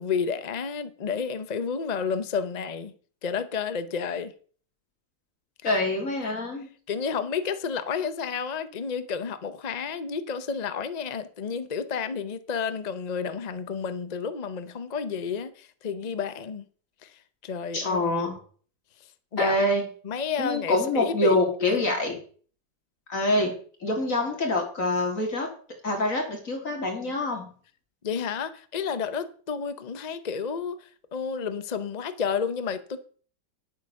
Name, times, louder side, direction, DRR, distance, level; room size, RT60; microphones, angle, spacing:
voice 1, 0.0-2.9 3.2-4.3 6.9-16.6 17.0-18.1 19.3-19.6 20.0-21.8 28.0-33.0, left 6 dB, 60° left, 0.4 m, -31 dB
voice 2, 5.6-6.7 17.7-18.4 19.4-19.8 20.4-22.1 23.1-23.5 23.8-25.5 25.8-27.5, left 1 dB, 40° left, 3.5 m, -25 dB
10.5 x 8.1 x 6.4 m
omnidirectional pair, 2.1 m